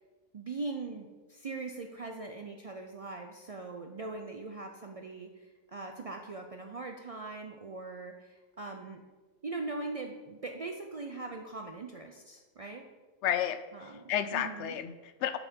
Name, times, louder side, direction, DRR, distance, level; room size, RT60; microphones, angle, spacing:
voice 1, 0.3-5.3 5.7-9.0 9.4-12.9 13.7-14.0 14.3-14.7, right 3 dB, 65° right, 3 dB, 0.3 m, -41 dB
voice 2, 13.2-15.4, left 10 dB, 70° left, 11 dB, 0.8 m, -32 dB
7.0 x 4.9 x 5.2 m, 1.2 s
omnidirectional pair, 1.3 m